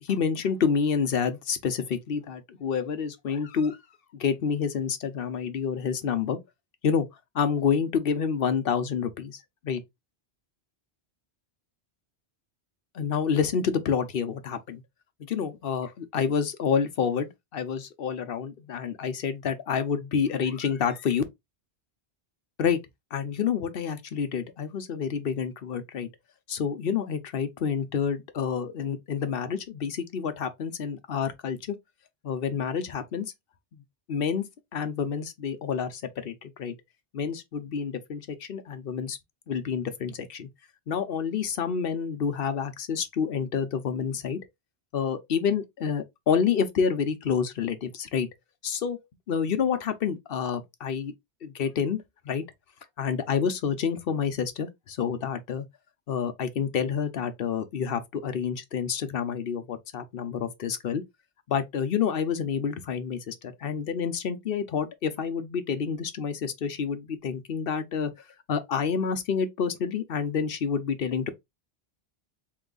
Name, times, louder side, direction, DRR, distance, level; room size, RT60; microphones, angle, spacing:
voice 1, 0.0-3.8 4.1-6.4 6.8-7.1 7.3-9.4 9.6-9.8 12.9-14.8 15.3-21.2 22.6-22.8 23.1-26.1 26.5-31.8 32.2-33.3 33.7-33.8 34.1-34.4 34.7-36.7 37.1-39.2 39.5-40.5 40.9-44.4 44.9-48.3 48.6-51.1 51.4-52.0 52.3-52.4 53.0-55.7 56.1-61.0 61.5-68.1 68.5-71.3, left 6 dB, 60° left, 0.9 m, -28 dB
3.4 x 3.0 x 3.8 m
omnidirectional pair, 1.1 m